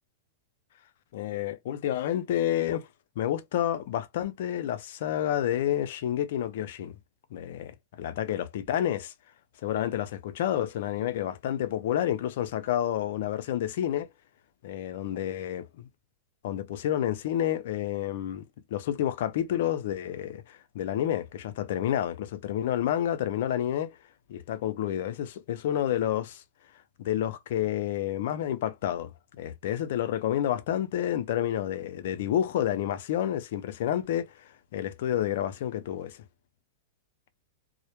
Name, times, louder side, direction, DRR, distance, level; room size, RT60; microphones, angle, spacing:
voice 1, 1.1-2.9 3.2-7.0 7.3-9.1 9.6-14.1 14.6-15.9 16.4-18.5 18.7-24.0 24.3-26.4 27.0-29.1 29.4-36.2, left 11 dB, 65° left, 0.4 m, -29 dB
2.0 x 2.0 x 2.9 m
hypercardioid pair, 135°, 0 cm